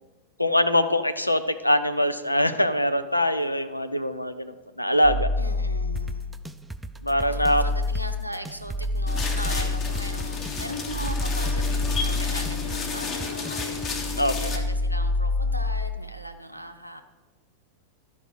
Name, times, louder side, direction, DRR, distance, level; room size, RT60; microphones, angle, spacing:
voice 1, 0.4-5.3 7.0-7.6 14.2-14.5, left 1 dB, 85° left, 10 dB, 0.6 m, -23 dB
sound 1, 5.0-6.5 6.9-13.4 13.7-16.0, left 2 dB, 45° right, 0.8 m, -28 dB
voice 2, 5.4-6.3 7.3-17.0, equal, 90° right, 7 dB, 0.7 m, -38 dB
sound 2, 6.0-14.0, right 1 dB, 5° right, 0.4 m, -39 dB
sound 3, 9.1-14.6, left 5 dB, 30° left, 1.4 m, -32 dB
12.0 x 5.5 x 6.4 m, 1.2 s
figure-of-eight pair, 90°, 0 cm